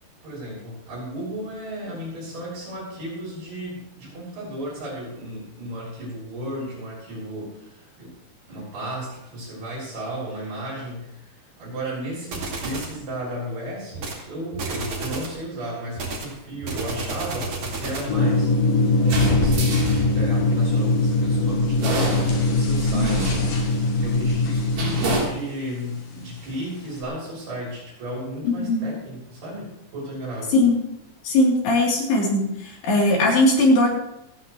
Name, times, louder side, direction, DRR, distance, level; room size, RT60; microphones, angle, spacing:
voice 1, 0.2-8.1 8.5-11.3 11.6-19.8 20.2-30.5, equal, 70° right, -6 dB, 8.5 m, -34 dB
sound 1, 12.3-13.0 13.9-14.2 14.5-15.4 16.0-18.2, right 3 dB, 45° right, 3.3 m, -31 dB
sound 2, 18.1-25.2, left 2 dB, 60° left, 3.8 m, -21 dB
sound 3, 19.0-20.6 21.8-22.7 23.0-23.9 24.8-25.2, right 2 dB, 85° right, 5.6 m, -28 dB
voice 2, 22.9-23.3 28.4-28.9 30.5-30.8 31.2-33.9, left 2 dB, 80° left, -3 dB, 5.6 m, -19 dB
27.5 x 9.4 x 3.2 m, 0.85 s
omnidirectional pair, 4.7 m